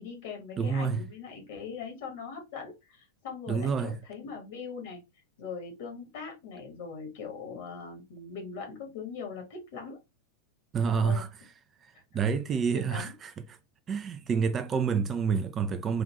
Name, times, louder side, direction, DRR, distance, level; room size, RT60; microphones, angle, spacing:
voice 1, 0.0-5.0 5.4-10.0 10.8-11.3 12.7-13.1, left 5 dB, 50° left, 1.3 m, -41 dB
voice 2, 0.6-1.0 3.5-4.0 10.7-11.3 12.1-13.3 13.9-16.0, right 6 dB, 25° right, 0.4 m, -28 dB
3.8 x 2.4 x 3.1 m
figure-of-eight pair, 90°, 0 cm